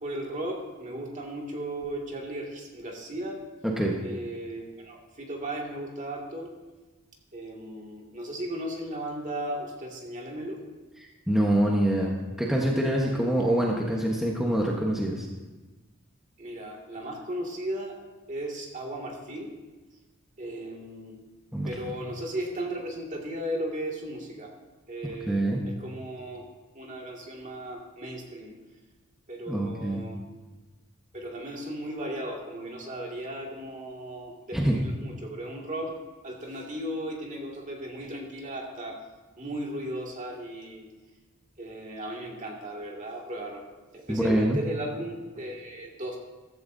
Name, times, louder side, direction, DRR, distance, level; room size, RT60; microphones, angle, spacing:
voice 1, 0.0-3.4 4.0-6.5 7.3-10.6 16.4-18.0 18.3-19.5 20.4-21.2 21.7-24.5 24.9-26.4 26.7-28.5 29.3-30.2 31.1-36.0 36.2-39.0 39.4-40.9 41.6-43.6 43.9-46.2, right 1 dB, 35° right, -1 dB, 2.2 m, -36 dB
voice 2, 3.6-4.0 11.3-12.1 12.4-15.3 21.5-21.7 25.3-25.6 29.5-30.0 34.5-34.8 44.1-44.6, right 1 dB, ahead, -3 dB, 1.1 m, -25 dB
15.0 x 13.5 x 2.7 m, 1.2 s
head